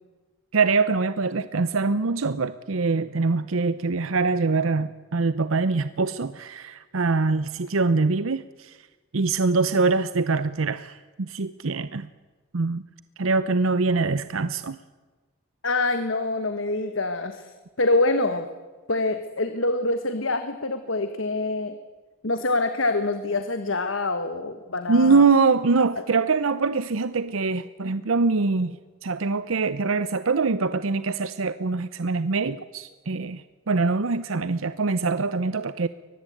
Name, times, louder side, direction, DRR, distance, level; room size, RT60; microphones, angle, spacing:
voice 1, 0.5-8.9 9.1-12.1 12.5-12.8 13.2-14.8 24.9-35.9, right 4 dB, 85° right, 14 dB, 0.7 m, -24 dB
voice 2, 15.6-17.5 17.8-18.5 18.9-21.7 22.2-25.2, left 2 dB, 75° left, 8 dB, 1.4 m, -25 dB
23.0 x 19.5 x 8.6 m, 1.3 s
head